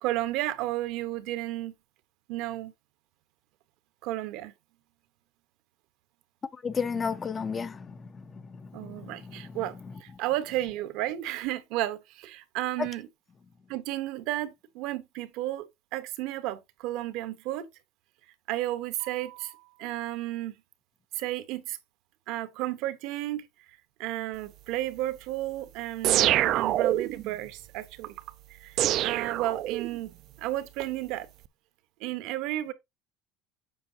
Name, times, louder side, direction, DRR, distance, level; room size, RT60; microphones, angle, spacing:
voice 1, 0.0-1.7 2.3-2.7 4.0-4.5 8.7-13.1 13.7-15.7 15.9-17.7 18.5-20.5 21.1-21.8 22.3-28.2 28.5-30.1 30.4-31.3 32.0-32.7, right 15 dB, 70° right, 1.1 m, -33 dB
voice 2, 6.6-9.6 12.8-12.9, left 5 dB, 25° left, 0.5 m, -33 dB
sound 1, 26.0-27.3 28.8-30.1, right 13 dB, 55° right, 0.4 m, -25 dB
7.7 x 5.4 x 2.8 m
supercardioid pair, 125°, 0 cm